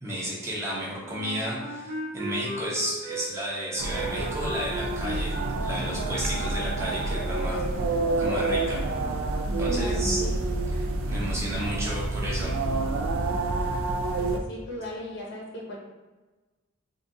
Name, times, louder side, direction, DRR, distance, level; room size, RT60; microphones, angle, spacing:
voice 1, 0.0-7.8 8.2-8.8 9.6-10.2 10.5-12.6, equal, 15° right, -6 dB, 0.6 m, -33 dB
Wind instrument woodwind instrument, 1.0-6.7, right 1 dB, 60° right, 1.0 m, -37 dB
sound 1, 3.8-14.4, right 2 dB, 80° right, 0.4 m, -28 dB
voice 2, 9.7-10.4 14.2-15.8, left 1 dB, 55° left, -3 dB, 0.7 m, -38 dB
3.8 x 2.3 x 2.6 m, 1.2 s
head